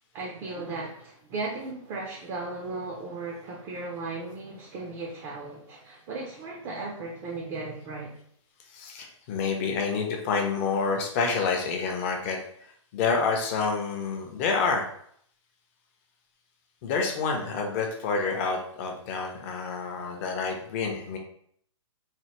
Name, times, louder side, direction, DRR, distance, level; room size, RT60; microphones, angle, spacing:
voice 1, 0.1-8.2, right 3 dB, 25° right, -1 dB, 0.5 m, -36 dB
voice 2, 8.7-14.9 16.8-21.2, left 4 dB, 25° left, 2 dB, 0.5 m, -28 dB
3.2 x 2.1 x 2.9 m, 0.64 s
hypercardioid pair, 145°, 17 cm